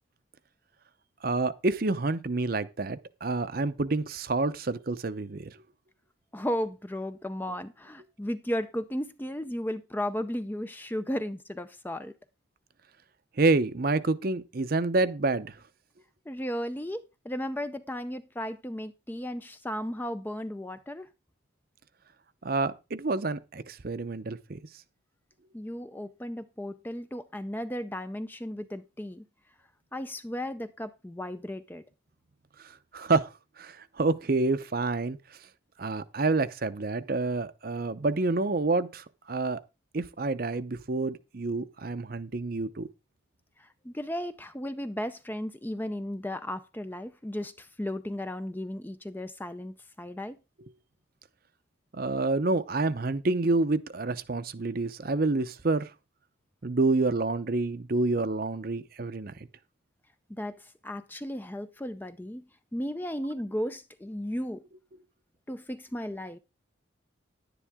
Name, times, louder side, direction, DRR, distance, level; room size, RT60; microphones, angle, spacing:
voice 1, 1.2-5.5 13.4-15.6 22.4-24.6 32.6-33.3 33.6-35.2 35.8-39.6 39.9-42.9 51.9-55.9 56.6-59.5, right 3 dB, 50° right, 0.7 m, -28 dB
voice 2, 6.3-12.1 16.3-21.1 25.5-29.2 29.9-31.8 43.6-50.4 60.3-62.4 62.7-64.6 65.5-66.4, equal, 10° left, 0.5 m, -35 dB
10.5 x 10.0 x 3.6 m
head